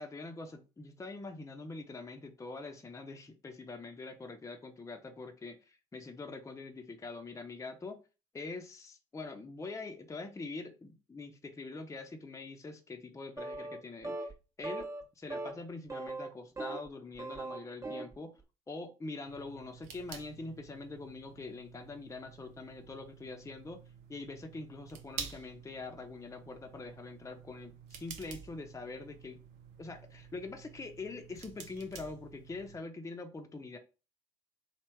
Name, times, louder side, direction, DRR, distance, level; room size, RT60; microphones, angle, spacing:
voice 1, 0.0-8.0 8.3-18.4 18.7-29.4 29.8-33.8, left 3 dB, 20° left, 5 dB, 0.7 m, -44 dB
sound 1, 13.4-13.8 14.0-14.3 14.6-15.0 15.3-15.5 15.9-16.9 17.2-18.1, right 2 dB, 20° right, 1.0 m, -39 dB
sound 2, 19.3-32.8, right 7 dB, 80° right, 0.8 m, -50 dB
3.4 x 2.4 x 4.4 m, 0.32 s
hypercardioid pair, 60°, 15 cm